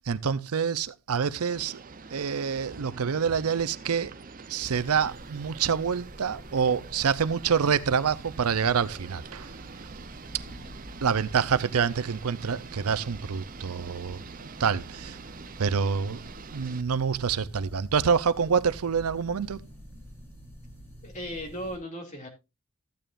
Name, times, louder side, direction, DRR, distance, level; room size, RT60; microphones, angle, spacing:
voice 1, 0.1-1.8 2.1-4.1 4.5-9.5 11.0-15.2 15.6-16.2 16.5-19.6, right 6 dB, 90° right, 0.6 m, -27 dB
sound 1, 1.3-16.8, right 4 dB, 40° right, 0.6 m, -45 dB
sound 2, 4.6-21.8, equal, 10° left, 3.1 m, -48 dB
voice 2, 21.0-22.3, equal, 35° left, 2.7 m, -37 dB
14.0 x 9.0 x 2.5 m
head